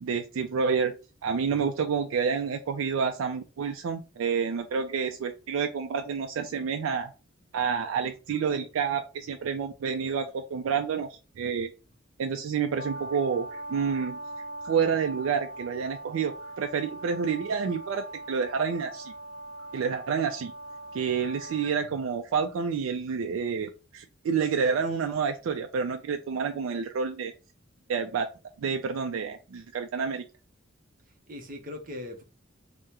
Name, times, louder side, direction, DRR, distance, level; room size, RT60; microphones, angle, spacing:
voice 1, 0.0-1.0 1.2-7.1 7.5-11.7 12.2-14.2 14.6-19.1 19.7-20.5 20.9-27.3 27.9-28.3 28.6-30.3, right 6 dB, 90° right, 0.3 m, -29 dB
Brass instrument, 12.7-21.8, right 1 dB, 65° left, 0.6 m, -41 dB
voice 2, 31.3-32.2, left 2 dB, 40° right, 0.6 m, -40 dB
3.5 x 2.1 x 2.8 m
head